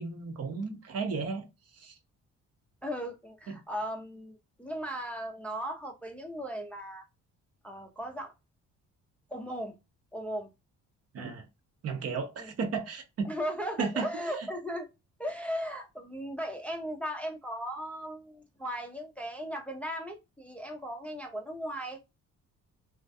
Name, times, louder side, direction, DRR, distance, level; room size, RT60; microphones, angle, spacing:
voice 1, 0.0-1.4 1.7-2.0 3.5-3.6 11.1-11.5 11.8-13.3 13.8-14.1, right 5 dB, 55° right, 0.7 m, -34 dB
voice 2, 2.8-4.3 4.6-7.1 7.6-8.3 9.3-9.7 10.1-10.5 11.2-11.3 12.4-12.5 13.2-14.9 15.2-22.0, equal, 5° left, 0.4 m, -37 dB
2.4 x 2.1 x 2.5 m
cardioid pair, 90°, 30 cm